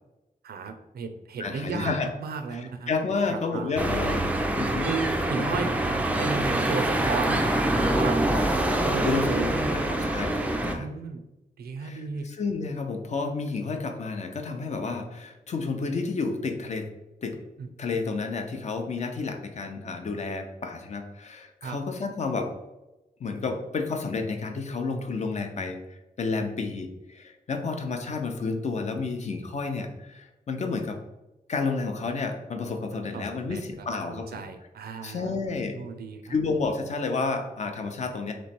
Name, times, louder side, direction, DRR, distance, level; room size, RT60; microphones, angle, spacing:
voice 1, 0.4-1.9 2.2-2.9 3.3-3.7 4.8-5.7 6.2-7.5 7.7-8.4 8.8-10.1 10.6-11.2 11.6-12.3 17.6-17.7 21.6-21.8 26.4-26.5 33.1-35.4 35.7-36.3, right 5 dB, 90° right, 7 dB, 0.5 m, -34 dB
voice 2, 1.4-2.1 2.5-2.6 2.9-4.2 4.5-4.9 9.0-9.5 9.9-10.9 11.8-16.9 17.2-17.4 17.8-22.5 23.2-31.0 31.5-34.4 35.0-35.8 36.3-38.3, left 4 dB, 45° left, 5 dB, 0.5 m, -30 dB
sound 1, 3.8-10.7, right 1 dB, 10° right, 0.3 m, -25 dB
3.1 x 3.1 x 4.2 m, 0.97 s
wide cardioid pair, 165°, 16 cm